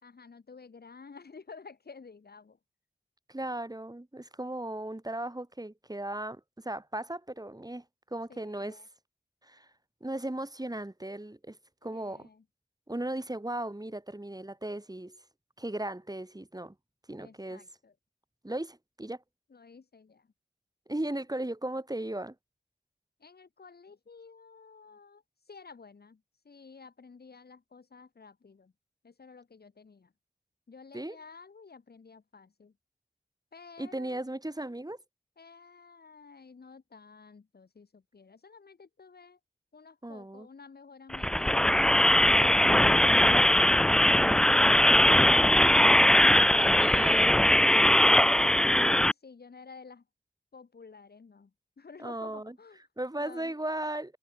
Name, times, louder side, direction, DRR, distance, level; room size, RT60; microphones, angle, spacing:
voice 1, 0.0-2.6 8.3-8.9 11.8-12.4 17.2-17.9 19.5-20.3 21.1-21.2 23.2-28.7 29.0-30.1 30.7-32.7 33.5-34.2 35.4-39.4 39.7-41.6 42.0-42.6 42.9-43.7 44.0-46.7 47.5-47.8 48.1-50.0 50.5-51.5 51.8-52.8 53.2-53.5, left 5 dB, 85° left, 2.3 m, -51 dB
voice 2, 3.3-7.8 8.1-8.8 9.4-9.7 10.0-11.6 11.8-12.3 12.9-15.2 15.6-16.7 17.1-17.7 18.4-19.2 20.9-22.4 30.9-31.2 33.8-35.0 40.0-40.5 46.3-47.4 47.8-47.9 52.0-52.6 53.0-54.2, right 1 dB, 25° right, 5.4 m, -36 dB
sound 1, 41.1-49.1, left 1 dB, 5° left, 0.3 m, -21 dB
cardioid pair, 45°, 16 cm